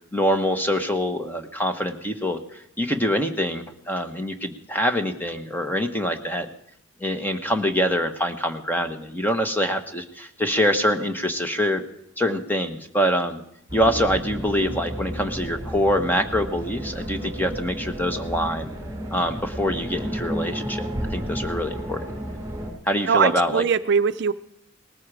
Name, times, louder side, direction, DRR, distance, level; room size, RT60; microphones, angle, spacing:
voice 1, 0.1-6.5 7.0-11.8 12.2-13.4 13.7-18.7 19.1-22.1 22.8-23.6, equal, 10° left, 6 dB, 1.1 m, -25 dB
sound 1, 13.7-22.7, equal, 15° right, 5.0 m, -32 dB
voice 2, 23.1-24.3, right 6 dB, 55° right, 12 dB, 0.5 m, -21 dB
19.0 x 14.0 x 4.9 m, 0.78 s
head